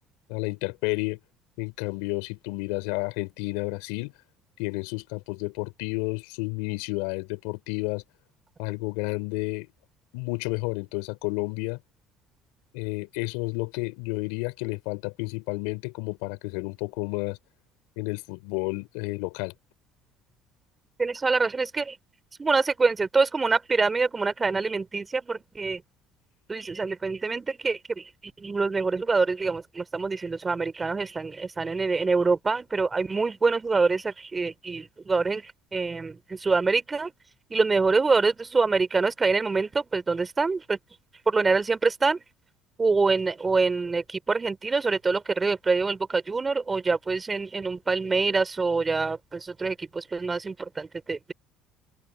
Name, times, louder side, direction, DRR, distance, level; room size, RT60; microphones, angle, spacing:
voice 1, 0.3-1.2 1.6-4.1 4.6-8.0 8.6-9.7 10.1-11.8 12.7-17.4 18.0-19.5, left 27 dB, 80° left, 4.2 m, -31 dB
voice 2, 21.0-22.0 22.4-25.8 26.5-37.1 37.5-40.8 41.3-42.2 42.8-51.3, right 4 dB, 25° right, 3.8 m, -25 dB
open air
supercardioid pair, 75°, 0 cm